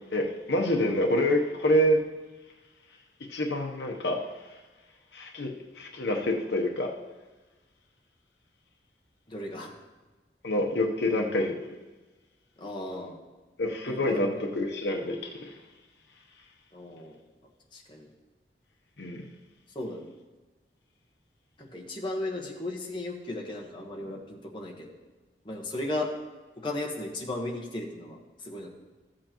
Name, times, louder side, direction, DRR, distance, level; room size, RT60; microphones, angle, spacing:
voice 1, 0.1-2.0 3.3-4.3 5.1-6.9 10.4-11.6 13.6-15.5 19.0-19.2, left 1 dB, 75° left, 2 dB, 0.9 m, -27 dB
voice 2, 9.3-9.7 12.6-13.2 13.9-14.4 16.7-17.2 17.7-18.1 19.7-20.0 21.6-24.9 25.4-26.1 26.6-28.7, left 1 dB, 25° left, -1 dB, 1.2 m, -35 dB
14.0 x 7.6 x 3.0 m, 1.2 s
head